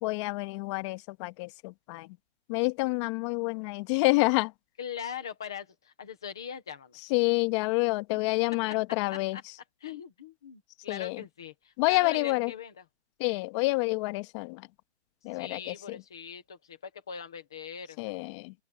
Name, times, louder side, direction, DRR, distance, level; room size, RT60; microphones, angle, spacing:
voice 1, 0.0-2.1 2.5-4.5 7.1-9.4 10.9-11.2 11.8-12.5 13.2-14.6 15.2-16.0 18.0-18.5, left 25 dB, 25° left, 1.3 m, -28 dB
voice 2, 4.8-7.0 9.1-9.4 9.8-12.8 15.3-18.0, left 7 dB, 5° left, 0.3 m, -41 dB
open air
hypercardioid pair, 150°, 35 cm